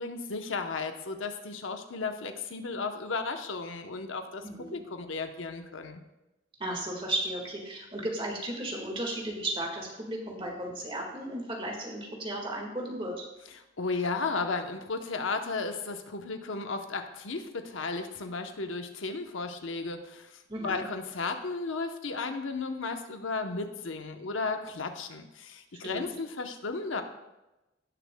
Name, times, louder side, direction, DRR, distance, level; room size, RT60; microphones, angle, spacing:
voice 1, 0.0-4.4 4.7-6.0 13.8-27.0, left 4 dB, 90° left, 6 dB, 0.9 m, -34 dB
voice 2, 4.4-4.8 6.6-13.1 20.5-20.8 25.8-26.1, right 1 dB, 25° right, 0 dB, 1.7 m, -35 dB
17.0 x 6.8 x 2.2 m, 1.0 s
head